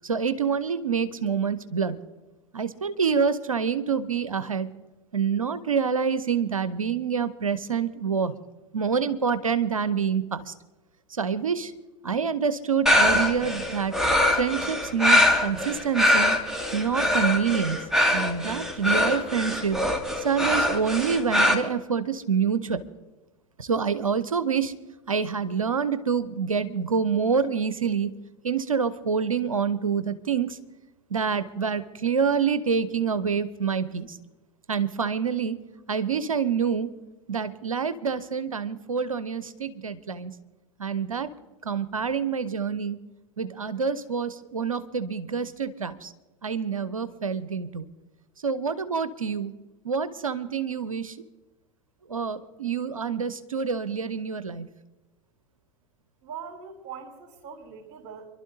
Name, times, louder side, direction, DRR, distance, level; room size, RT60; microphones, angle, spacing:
voice 1, 0.0-2.0 2.5-4.8 5.1-8.3 8.7-10.5 11.1-11.7 12.0-13.9 14.3-16.4 16.7-17.8 18.1-19.9 20.2-22.8 23.6-24.7 25.1-28.1 28.4-30.6 31.1-34.2 34.7-35.6 35.9-36.9 37.3-40.3 40.8-41.3 41.6-43.0 43.4-46.1 46.4-47.9 48.4-49.5 49.8-51.2 52.1-54.7, right 6 dB, 85° right, 14 dB, 0.7 m, -27 dB
sound 1, 12.9-21.5, left 1 dB, 5° right, 2.2 m, -23 dB
voice 2, 56.2-58.3, right 6 dB, 50° right, 3 dB, 3.5 m, -41 dB
28.0 x 12.0 x 2.7 m, 1.1 s
figure-of-eight pair, 85°, 17 cm